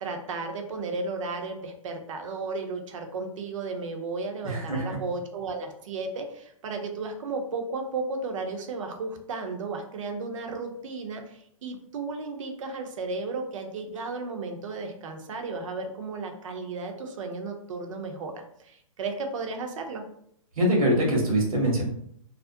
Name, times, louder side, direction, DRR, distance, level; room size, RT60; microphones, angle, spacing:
voice 1, 0.0-20.0, right 3 dB, 65° right, 4 dB, 0.6 m, -34 dB
voice 2, 4.4-5.0 20.6-21.8, equal, 85° right, 0 dB, 1.0 m, -23 dB
2.4 x 2.0 x 2.5 m, 0.68 s
hypercardioid pair, 135°, 18 cm